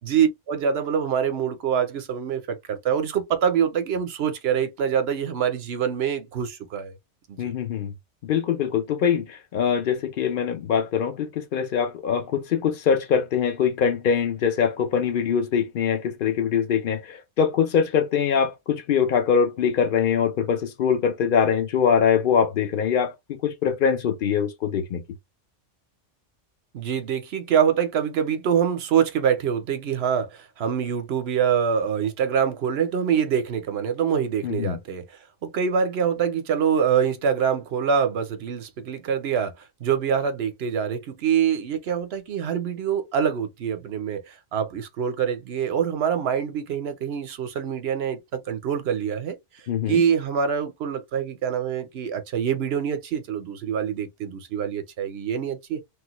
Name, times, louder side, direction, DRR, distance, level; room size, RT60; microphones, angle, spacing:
voice 1, 0.0-6.9 7.3-7.5 26.7-30.3 30.6-35.0 35.4-39.5 39.8-49.4 49.9-55.8, right 7 dB, 60° right, 0.9 m, -25 dB
voice 2, 7.4-7.9 8.2-25.0 34.4-34.8 49.7-50.0, left 7 dB, 50° left, 0.7 m, -23 dB
3.2 x 2.1 x 2.9 m
omnidirectional pair, 1.3 m